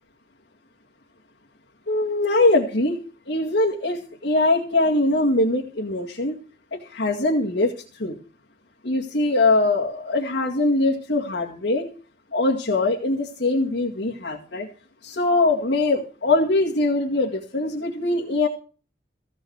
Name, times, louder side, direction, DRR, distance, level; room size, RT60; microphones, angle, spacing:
voice 1, 1.9-3.0 3.3-6.3 6.9-8.2 8.8-11.9 12.3-14.7 15.0-18.5, left 2 dB, 85° left, -2 dB, 2.2 m, -22 dB
15.5 x 6.2 x 8.0 m, 0.38 s
head